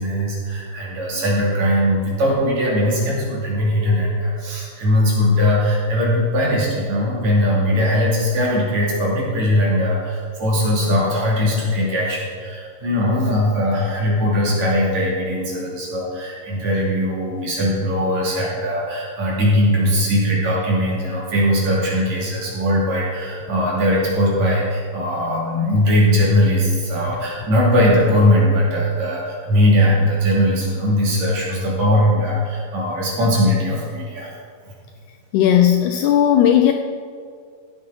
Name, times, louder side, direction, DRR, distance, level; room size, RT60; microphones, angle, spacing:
voice 1, 0.0-34.3, equal, 55° right, -5 dB, 3.7 m, -19 dB
voice 2, 35.3-36.7, left 10 dB, 80° left, 6 dB, 1.8 m, -15 dB
15.5 x 7.9 x 3.9 m, 2.1 s
omnidirectional pair, 3.9 m